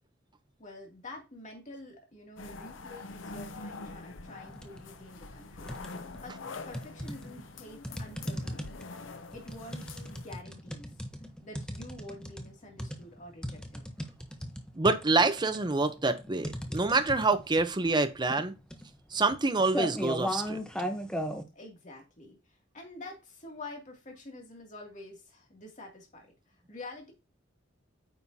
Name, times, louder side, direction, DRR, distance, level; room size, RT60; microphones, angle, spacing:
voice 1, 0.6-5.9 6.2-8.8 9.3-10.9 11.4-13.9 21.5-27.1, left 2 dB, 40° left, 2.5 m, -48 dB
sound 1, 2.4-10.4, left 3 dB, 80° left, 0.8 m, -45 dB
sound 2, 4.5-4.9 5.3-6.2 6.7-21.4, equal, 5° left, 0.9 m, -37 dB
voice 2, 14.7-18.5 19.1-20.6, right 3 dB, 25° right, 0.7 m, -27 dB
9.2 x 5.5 x 2.8 m
head